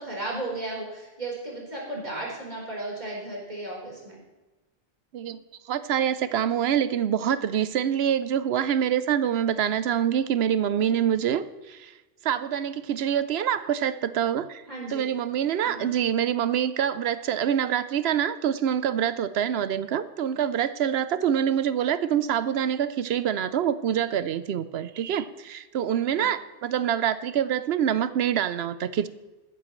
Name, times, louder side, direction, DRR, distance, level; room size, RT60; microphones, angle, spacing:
voice 1, 0.0-4.2 14.7-15.1 15.6-15.9 26.1-26.3, right 2 dB, 45° right, -4 dB, 4.5 m, -35 dB
voice 2, 5.7-11.9 12.2-14.6 14.9-29.1, right 9 dB, 80° right, 14 dB, 0.9 m, -25 dB
16.0 x 12.5 x 3.2 m, 1.1 s
omnidirectional pair, 1.0 m